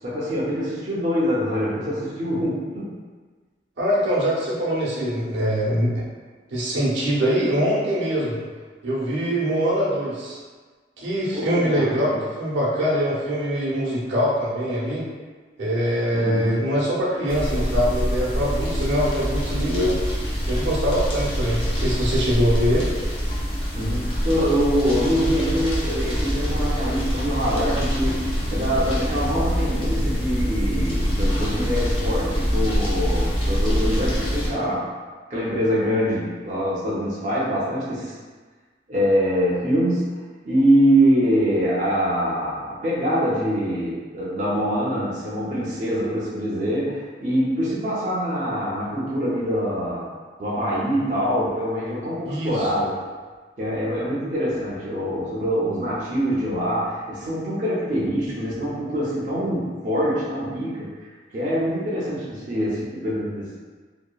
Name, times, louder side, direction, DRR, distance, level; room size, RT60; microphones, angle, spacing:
voice 1, 0.0-3.0 11.3-12.1 16.1-16.7 23.7-34.8 35.3-38.1 38.9-40.1 40.5-50.1 50.4-52.9 53.6-61.1 61.3-63.6, equal, 40° right, -8 dB, 0.5 m, -24 dB
voice 2, 3.8-6.0 6.5-8.4 8.8-10.4 11.0-15.1 15.6-20.0 20.4-22.9 52.2-52.7, equal, 85° right, -7 dB, 0.7 m, -23 dB
sound 1, 17.3-34.5, equal, 30° left, 0.5 m, -25 dB
2.7 x 2.2 x 2.3 m, 1.4 s
head